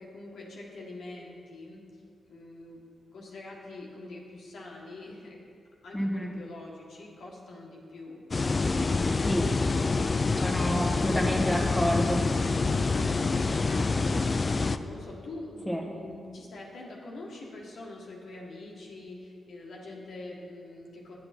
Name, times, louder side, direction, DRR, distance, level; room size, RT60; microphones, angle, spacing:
voice 1, 0.0-1.8 2.3-2.8 3.1-5.4 5.8-8.2 8.6-9.6 12.8-21.2, left 2 dB, 80° left, -3 dB, 1.6 m, -44 dB
voice 2, 5.9-6.3 9.1-9.5 10.4-12.3 15.7-15.8, equal, 5° left, -1 dB, 1.3 m, -29 dB
sound 1, 8.3-14.8, left 3 dB, 40° left, 0.3 m, -26 dB
8.9 x 7.9 x 4.4 m, 2.4 s
cardioid pair, 65°, 0 cm